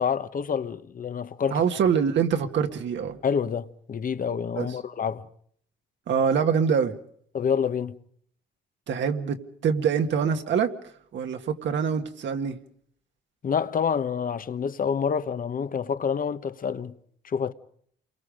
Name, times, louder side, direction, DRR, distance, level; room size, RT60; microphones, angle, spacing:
voice 1, 0.0-1.6 3.2-5.3 7.3-8.0 13.4-17.0 17.2-17.5, left 7 dB, 45° left, 1.1 m, -27 dB
voice 2, 1.5-3.2 4.6-4.8 6.1-7.0 8.9-10.7 11.1-12.6, right 7 dB, 65° right, 1.9 m, -25 dB
28.5 x 22.5 x 5.2 m
cardioid pair, 90°, 20 cm